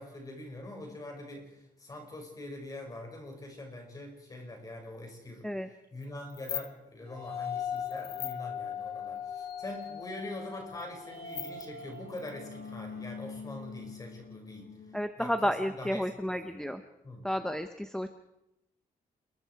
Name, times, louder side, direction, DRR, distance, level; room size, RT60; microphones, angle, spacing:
voice 1, 0.0-5.5 5.9-14.7 15.2-16.5 17.0-17.3, left 1 dB, 25° left, 2 dB, 5.8 m, -43 dB
sound 1, 6.0-6.1 6.3-6.7 7.8-8.4 9.5-9.6 9.8-9.9 10.7-10.8 11.1-12.7, left 10 dB, 70° left, 1.4 m, -39 dB
sound 2, 7.0-14.9, left 7 dB, 90° left, 6.3 m, -40 dB
voice 2, 14.9-16.8 17.2-18.1, equal, 5° left, 8 dB, 0.8 m, -31 dB
29.0 x 22.5 x 4.7 m, 0.88 s
wide cardioid pair, 175°, 16 cm